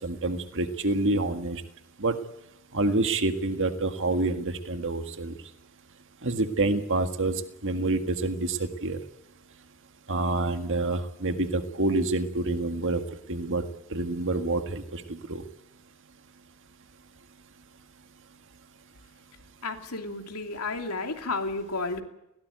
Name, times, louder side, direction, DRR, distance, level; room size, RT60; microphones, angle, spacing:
voice 1, 0.0-1.6 2.0-2.1 2.7-5.3 6.2-7.3 7.6-9.0 10.1-13.0 13.3-13.6 13.9-15.4, right 2 dB, 60° right, 8 dB, 1.7 m, -27 dB
voice 2, 19.6-22.0, left 3 dB, 90° left, 4 dB, 2.9 m, -32 dB
20.5 x 18.0 x 9.3 m, 0.86 s
head